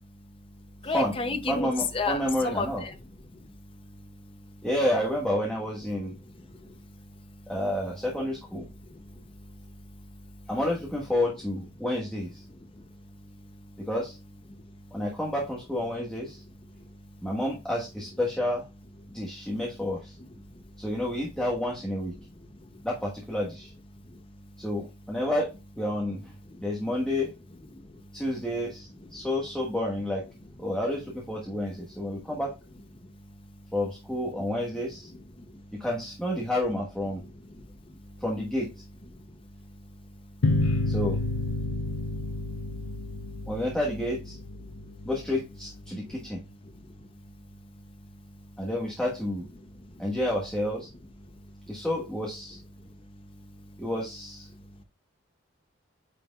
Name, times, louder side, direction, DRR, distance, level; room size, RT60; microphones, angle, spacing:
voice 1, 0.0-4.7 5.9-7.5 8.7-10.5 12.5-13.9 14.5-15.0 16.3-17.3 19.0-19.6 20.2-20.9 22.2-22.9 23.9-24.7 26.5-26.9 27.7-28.2 29.1-29.3 31.5-31.6 31.9-32.3 33.0-33.7 34.3-34.5 34.7-35.9 37.2-38.2 39.1-40.9 41.6-43.5 44.6-45.1 45.9-48.7 49.6-50.2 51.3-51.8 52.5-53.9 54.5-54.8, left 3 dB, 25° left, 6 dB, 0.7 m, -41 dB
voice 2, 1.5-2.8 4.6-6.1 7.5-8.7 10.5-12.4 13.9-14.2 14.9-16.4 17.2-18.6 19.1-20.1 20.8-22.1 22.8-23.7 24.6-25.5 25.8-26.3 26.6-27.3 28.1-30.2 30.6-32.5 33.7-35.1 35.7-37.2 38.2-38.7 40.9-41.2 43.5-44.4 45.0-46.4 48.6-49.5 50.0-50.9 51.7-52.6 53.8-54.5, left 1 dB, 5° left, -4 dB, 1.4 m, -30 dB
sound 1, 40.4-45.6, left 2 dB, 80° left, 0.8 m, -30 dB
9.3 x 4.5 x 2.4 m, 0.28 s
head